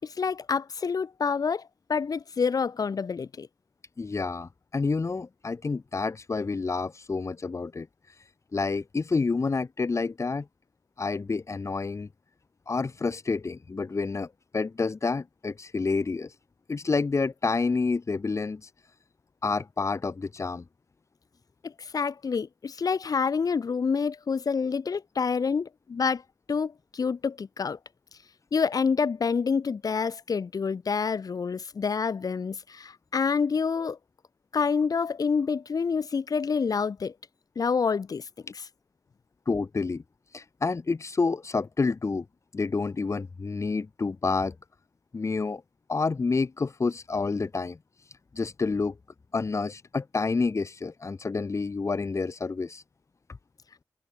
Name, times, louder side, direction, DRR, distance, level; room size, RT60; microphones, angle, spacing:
voice 1, 0.0-1.6 1.9-3.5 21.6-26.2 26.5-27.8 28.5-34.0 34.5-37.1 37.5-38.2, left 5 dB, 65° left, 5.0 m, -27 dB
voice 2, 4.0-8.2 8.5-10.5 11.0-12.1 12.7-16.4 16.7-18.7 19.4-20.6 39.5-40.0 40.3-42.3 42.5-44.6 45.1-45.6 45.9-47.8 48.3-48.9 49.3-52.8, left 4 dB, 45° left, 3.4 m, -29 dB
wide cardioid pair, 75°, 7 cm